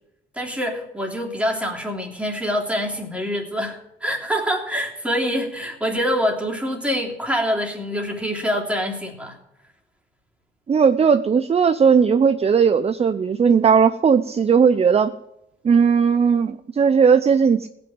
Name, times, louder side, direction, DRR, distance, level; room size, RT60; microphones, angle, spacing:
voice 1, 0.3-9.4, equal, 5° right, -1 dB, 3.1 m, -25 dB
voice 2, 10.7-15.1 15.6-17.7, right 6 dB, 30° right, 13 dB, 0.6 m, -17 dB
17.0 x 6.1 x 8.9 m, 0.87 s
cardioid pair, 90°, 20 cm